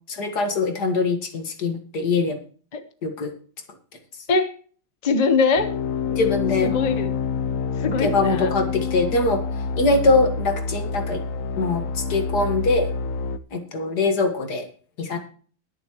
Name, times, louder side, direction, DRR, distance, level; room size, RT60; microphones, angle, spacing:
voice 1, 0.1-2.4 3.0-3.3 6.1-6.7 8.0-9.4 9.8-11.2 11.6-12.9 13.5-14.7 15.0-15.2, left 3 dB, 55° left, 6 dB, 2.1 m, -22 dB
voice 2, 5.0-5.7 6.6-7.1 7.8-8.5, left 4 dB, 30° left, 8 dB, 0.8 m, -21 dB
sound 1, 5.6-13.4, left 5 dB, 85° left, 0.7 m, -27 dB
22.0 x 7.3 x 3.0 m, 0.44 s
omnidirectional pair, 2.2 m